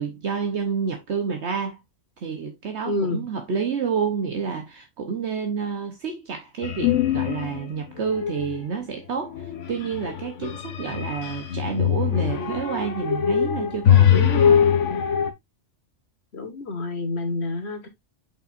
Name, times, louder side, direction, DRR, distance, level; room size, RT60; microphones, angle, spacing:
voice 1, 0.0-1.8 2.2-14.6, right 6 dB, 65° right, 1.2 m, -29 dB
voice 2, 2.8-3.2 16.3-17.9, left 2 dB, 60° left, 1.7 m, -28 dB
sound 1, 6.6-7.6 8.0-8.6 9.3-15.3, left 9 dB, 80° left, 1.3 m, -22 dB
7.2 x 5.8 x 2.5 m
omnidirectional pair, 1.2 m